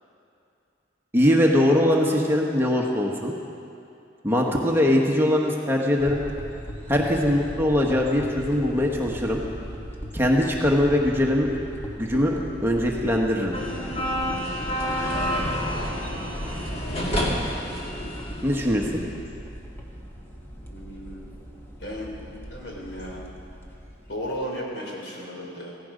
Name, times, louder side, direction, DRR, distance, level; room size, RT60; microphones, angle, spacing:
voice 1, 1.1-3.3 4.2-6.2 6.9-9.4 10.1-11.5 12.0-13.5 18.4-19.0, left 1 dB, 10° right, -1 dB, 1.2 m, -21 dB
sound 1, 6.0-24.5, equal, 10° left, 1.3 m, -39 dB
sound 2, 13.5-18.9, equal, 30° left, 2.2 m, -28 dB
voice 2, 20.7-21.3 21.8-23.2 24.1-25.7, equal, 70° left, -2 dB, 3.6 m, -35 dB
17.5 x 16.0 x 5.1 m, 2.6 s
head